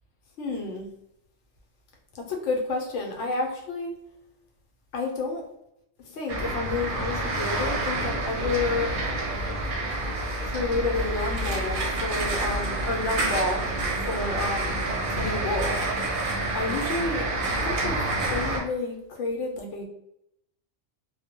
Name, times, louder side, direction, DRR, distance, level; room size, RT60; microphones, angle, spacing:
voice 1, 0.4-0.9 2.1-3.9 4.9-5.4 6.1-8.9 10.4-13.6 14.0-15.8 16.5-18.0 18.3-19.8, left 3 dB, 85° left, 1 dB, 1.0 m, -30 dB
sound 1, 6.3-18.6, right 2 dB, 55° right, 0.6 m, -28 dB
2.2 x 2.0 x 2.7 m, 0.79 s
omnidirectional pair, 1.2 m